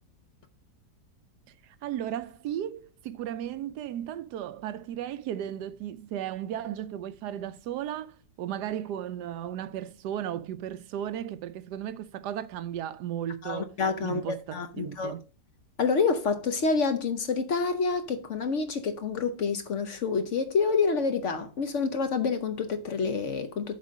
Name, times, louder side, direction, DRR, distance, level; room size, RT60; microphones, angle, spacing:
voice 1, 1.7-13.7 14.0-15.2, right 10 dB, 85° right, 1.2 m, -35 dB
voice 2, 13.4-15.2 15.8-23.8, left 5 dB, 55° left, 0.9 m, -28 dB
7.5 x 4.2 x 6.2 m
omnidirectional pair, 1.8 m